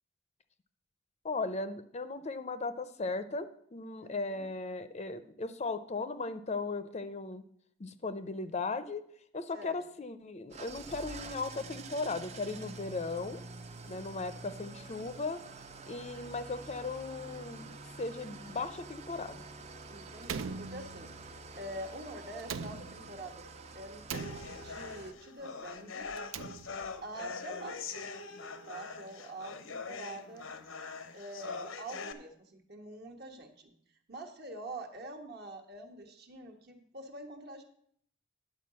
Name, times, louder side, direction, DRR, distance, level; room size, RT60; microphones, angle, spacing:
voice 1, 1.2-7.4 7.8-9.0 9.3-13.4 13.9-15.4 15.9-19.4, left 3 dB, 35° left, 11 dB, 0.5 m, -37 dB
voice 2, 4.0-4.5 9.5-9.8 19.9-21.1 21.6-23.5 23.7-26.1 27.0-28.0 28.7-30.5 31.1-33.7 34.1-37.6, right 1 dB, 55° right, 4 dB, 1.4 m, -45 dB
Engine starting / Idling, 10.5-25.1, right 3 dB, 35° right, 0.6 m, -47 dB
Slam, 20.2-21.4 22.4-23.3 24.1-25.0 26.1-27.0, right 5 dB, 80° right, 0.5 m, -41 dB
sound 1, 24.1-32.1, left 4 dB, 90° left, 0.8 m, -43 dB
10.5 x 4.8 x 7.5 m, 0.66 s
head